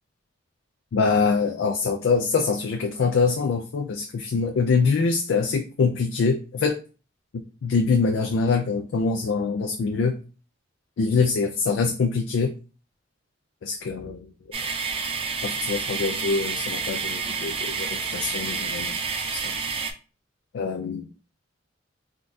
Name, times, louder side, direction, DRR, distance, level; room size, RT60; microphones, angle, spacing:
voice 1, 0.9-6.8 7.6-10.2 11.0-12.5 13.6-14.2 15.4-18.9 19.3-19.5 20.5-21.1, left 4 dB, 80° left, 4 dB, 0.4 m, -24 dB
sound 1, 14.5-19.9, right 5 dB, 30° right, 0.4 m, -29 dB
3.7 x 2.3 x 2.5 m, 0.35 s
head